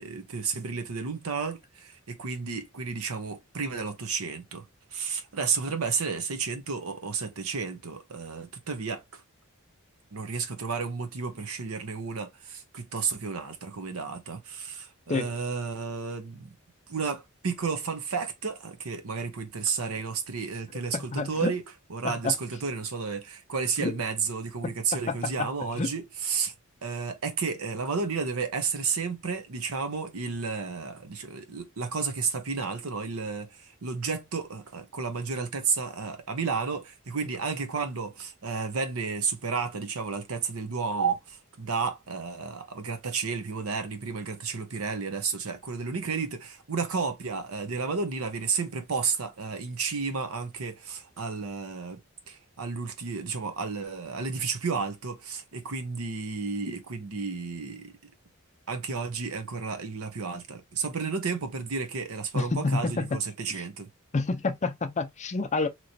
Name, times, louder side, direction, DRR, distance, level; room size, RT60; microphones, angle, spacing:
voice 1, 0.0-4.6 4.9-9.2 10.1-16.5 16.9-21.6 21.9-26.5 26.8-33.5 33.8-52.0 52.3-57.9 58.7-63.9, right 5 dB, 90° right, 0.8 m, -32 dB
voice 2, 20.9-21.5 22.0-22.3 23.8-24.0 24.9-25.5 25.8-25.9 62.3-63.2 63.5-63.6 64.1-65.7, left 3 dB, 35° left, 0.5 m, -29 dB
3.0 x 3.0 x 2.7 m
head